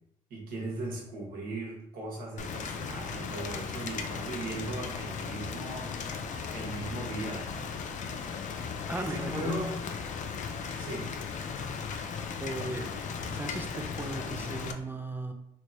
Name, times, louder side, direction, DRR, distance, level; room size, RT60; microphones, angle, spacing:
voice 1, 0.3-5.9 6.5-7.5 8.9-9.7 10.8-11.1, right 1 dB, 75° right, -2 dB, 1.2 m, -37 dB
Rain, 2.4-14.7, left 5 dB, 55° left, 0.4 m, -37 dB
voice 2, 8.9-9.8 12.4-12.9 13.3-15.3, right 2 dB, 15° right, 5 dB, 0.4 m, -37 dB
3.1 x 3.1 x 2.6 m, 0.78 s
supercardioid pair, 75°, 15 cm